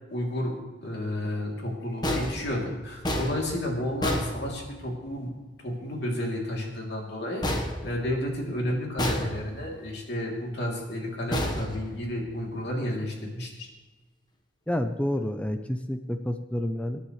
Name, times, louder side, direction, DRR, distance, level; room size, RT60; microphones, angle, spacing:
voice 1, 0.1-0.5 0.8-5.3 5.6-7.4 7.8-13.7, left 1 dB, 60° left, -1 dB, 3.2 m, -31 dB
sound 1, 2.0-5.1 7.4-8.5 9.0-9.8 11.3-12.4, left 1 dB, 20° left, 1.3 m, -31 dB
voice 2, 14.7-17.0, left 1 dB, 5° left, 7 dB, 0.6 m, -29 dB
25.5 x 10.5 x 3.3 m, 1.2 s
head